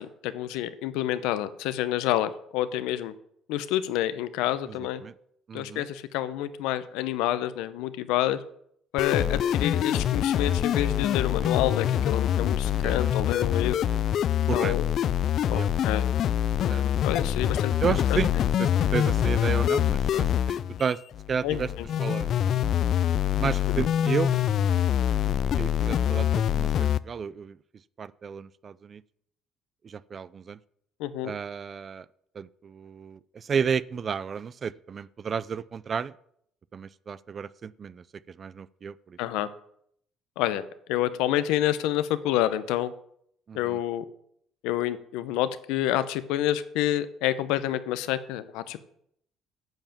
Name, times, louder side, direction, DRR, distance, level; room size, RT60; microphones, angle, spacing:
voice 1, 0.0-3.1 3.5-5.0 5.5-8.4 8.9-13.8 14.5-14.8 15.5-16.0 16.6-17.7 18.1-18.2 21.4-21.9 23.7-23.9 31.0-31.3 39.2-39.5 40.4-42.9 43.5-44.0 44.6-48.8, left 13 dB, 90° left, 13 dB, 0.7 m, -28 dB
voice 2, 4.7-5.1 5.5-5.8 9.2-9.3 11.4-11.5 12.8-13.2 14.5-14.8 15.5-15.7 16.7-16.9 17.8-18.3 18.6-21.0 21.3-21.7 22.0-22.3 23.4-24.3 25.2-27.6 28.0-29.0 29.8-30.6 31.2-32.1 32.3-36.1 36.7-39.2 43.5-43.8, right 6 dB, 35° right, 20 dB, 0.4 m, -32 dB
sound 1, 9.0-27.0, left 10 dB, 55° left, 0.3 m, -25 dB
8.9 x 5.7 x 7.2 m, 0.69 s
cardioid pair, 110°, 0 cm